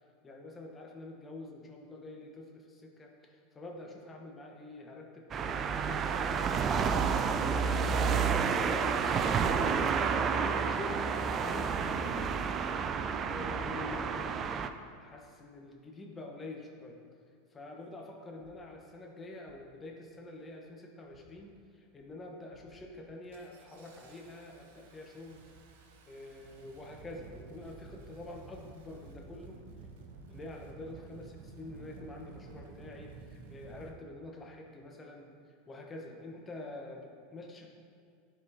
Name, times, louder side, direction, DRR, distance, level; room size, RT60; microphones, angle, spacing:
voice 1, 0.2-12.3 13.2-14.3 15.0-17.0 17.5-25.4 26.1-29.6 30.3-37.7, left 2 dB, 20° left, 0 dB, 1.1 m, -46 dB
sound 1, 5.3-14.7, right 6 dB, 35° right, 0.4 m, -30 dB
Engine starting, 17.6-17.7 18.4-18.7 19.4-19.7 20.1-20.6 21.0-21.6 22.0-22.2 22.5-33.9, right 4 dB, 70° right, 0.7 m, -52 dB
10.5 x 4.2 x 2.8 m, 2.3 s
hypercardioid pair, 90°, 0 cm